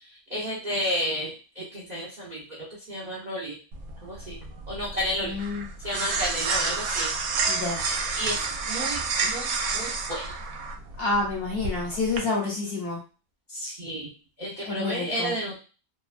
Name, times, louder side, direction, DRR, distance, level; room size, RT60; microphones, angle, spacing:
voice 1, 0.0-3.6 4.0-4.4 4.7-5.4 5.8-7.1 8.1-10.3 13.5-14.1 14.4-15.6, equal, 50° right, -6 dB, 0.5 m, -32 dB
sound 1, 3.7-12.2, right 4 dB, 75° right, 1.0 m, -30 dB
voice 2, 5.2-5.7 7.5-7.8 11.0-13.0 14.6-15.3, left 3 dB, 50° left, -3 dB, 0.8 m, -28 dB
2.8 x 2.2 x 2.4 m, 0.35 s
omnidirectional pair, 1.6 m